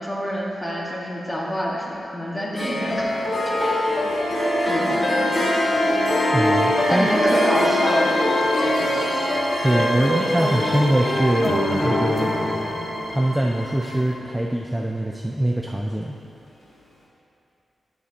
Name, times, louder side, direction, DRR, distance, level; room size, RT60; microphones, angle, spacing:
voice 1, 0.0-3.7 4.7-5.5 6.9-8.2 10.0-10.5 11.4-11.8, equal, 15° left, -4 dB, 1.8 m, -27 dB
Harp, 2.6-14.0, equal, 70° left, 1.7 m, -27 dB
sound 1, 2.9-14.1, left 1 dB, 30° left, 1.6 m, -24 dB
voice 2, 6.3-7.1 9.6-11.5 11.8-12.3 13.1-16.2, right 1 dB, 10° right, -1 dB, 0.5 m, -23 dB
9.7 x 8.1 x 3.0 m, 2.8 s
cardioid pair, 65°, 0 cm